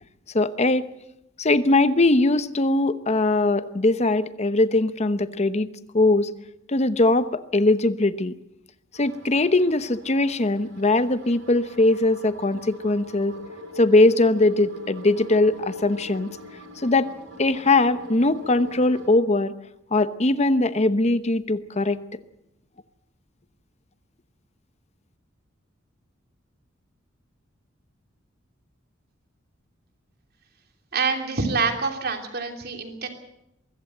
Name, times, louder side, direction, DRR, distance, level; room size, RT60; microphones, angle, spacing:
voice 1, 0.3-0.9 1.4-5.7 5.9-6.3 6.7-8.3 8.9-13.4 13.8-16.3 16.8-17.1 17.4-19.5 19.9-22.0, left 2 dB, 35° left, 13 dB, 1.0 m, -21 dB
sound 1, 8.9-19.1, left 1 dB, 75° right, 5.3 m, -42 dB
voice 2, 30.9-33.1, right 4 dB, 50° right, 5 dB, 3.1 m, -26 dB
23.0 x 15.5 x 7.8 m, 0.84 s
head